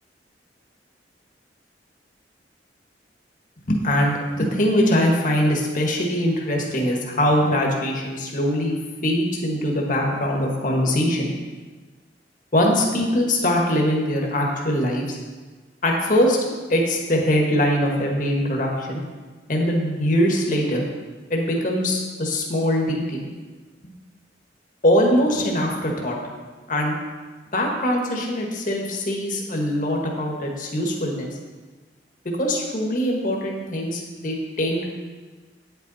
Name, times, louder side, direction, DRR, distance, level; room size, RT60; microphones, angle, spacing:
voice 1, 3.6-11.3 12.5-15.2 15.8-16.4 16.7-19.0 19.5-20.8 21.3-23.3 24.8-26.2 26.7-26.9 27.5-31.3 32.4-35.1, equal, 45° left, 0 dB, 1.5 m, -22 dB
9.6 x 8.4 x 4.1 m, 1.4 s
head